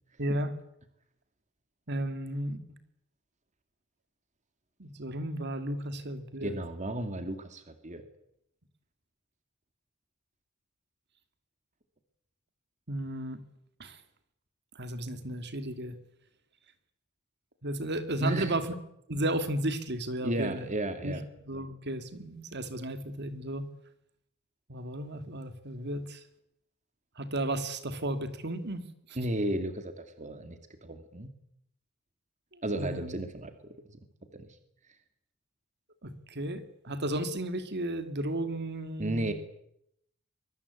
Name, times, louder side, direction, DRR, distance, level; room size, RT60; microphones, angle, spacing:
voice 1, 0.2-0.5 1.9-2.6 4.8-6.5 12.9-13.4 13.8-14.0 14.7-16.0 17.6-18.7 19.1-20.7 21.0-21.2 21.5-23.7 24.7-26.2 27.2-29.2 32.7-33.1 36.0-39.3, right 1 dB, 55° right, 10 dB, 2.7 m, -34 dB
voice 2, 6.4-8.0 18.2-18.6 20.2-21.2 29.2-31.3 32.6-34.0 34.3-34.6 39.0-39.3, right 1 dB, 35° right, 8 dB, 2.3 m, -33 dB
24.0 x 23.0 x 8.4 m, 0.76 s
head